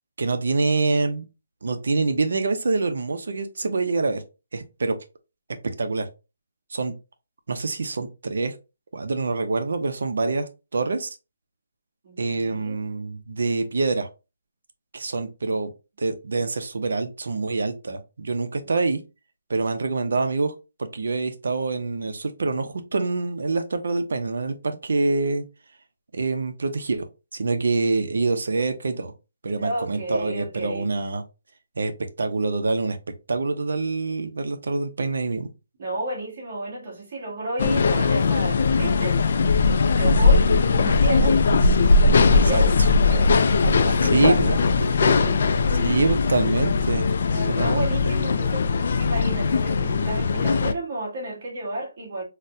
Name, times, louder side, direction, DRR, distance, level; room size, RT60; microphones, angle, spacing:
voice 1, 0.2-1.2 1.6-4.2 4.5-5.0 5.8-6.1 6.7-6.9 7.5-8.5 8.9-11.2 12.2-14.1 14.9-15.7 16.0-19.0 19.5-20.5 20.8-25.4 26.1-27.1 27.3-29.1 29.4-31.2 31.8-31.9 32.2-33.0 33.3-35.5 42.5-42.9 44.1-44.6 45.8-47.1 47.5-48.1, right 3 dB, 70° right, 0.6 m, -25 dB
voice 2, 12.0-12.8 18.6-18.8 29.6-30.9 35.8-39.2 39.8-41.4 42.0-42.7 43.1-44.4 44.7-45.9 47.3-52.2, right 2 dB, 40° right, 1.4 m, -32 dB
sound 1, 37.6-50.7, left 4 dB, 50° left, 0.3 m, -20 dB
4.0 x 2.1 x 2.5 m
hypercardioid pair, 170°, 0 cm